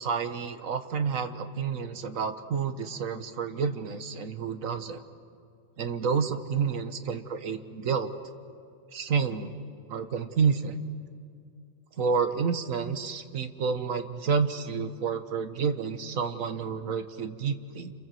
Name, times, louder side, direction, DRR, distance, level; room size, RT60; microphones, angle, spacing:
voice 1, 0.0-5.0 5.8-8.1 8.9-9.5 9.9-10.9 12.0-17.9, right 5 dB, 75° right, 8 dB, 1.6 m, -29 dB
29.0 x 26.5 x 7.7 m, 2.3 s
omnidirectional pair, 1.4 m